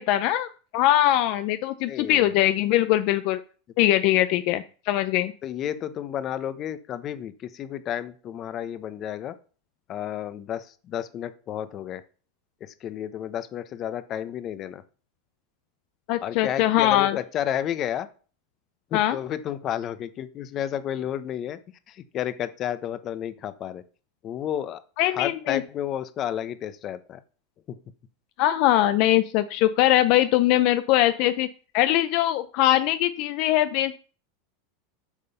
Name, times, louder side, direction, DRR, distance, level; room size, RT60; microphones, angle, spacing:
voice 1, 0.0-3.4 3.8-5.3 16.1-17.2 18.9-19.2 25.0-25.6 28.4-31.5 31.7-33.9, left 14 dB, 55° left, 11 dB, 0.6 m, -22 dB
voice 2, 1.9-2.3 5.4-9.3 9.9-12.0 12.6-14.8 16.2-18.1 18.9-21.6 21.9-23.8 24.2-24.8 25.1-27.2 27.7-27.8, left 10 dB, 35° left, 13 dB, 0.9 m, -31 dB
8.4 x 5.5 x 6.8 m, 0.38 s
supercardioid pair, 140°, 0 cm